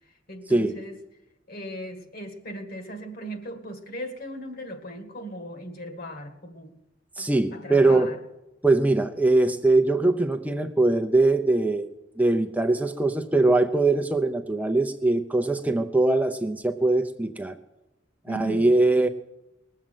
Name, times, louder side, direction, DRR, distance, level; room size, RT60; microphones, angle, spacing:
voice 1, 0.3-1.0 1.5-6.8 7.2-8.2 18.3-18.7, right 1 dB, 50° left, 6 dB, 1.8 m, -38 dB
voice 2, 7.2-8.1 8.6-11.9 12.2-17.6 18.3-19.1, right 2 dB, 10° right, 5 dB, 0.6 m, -22 dB
20.0 x 7.6 x 9.1 m, 0.97 s
head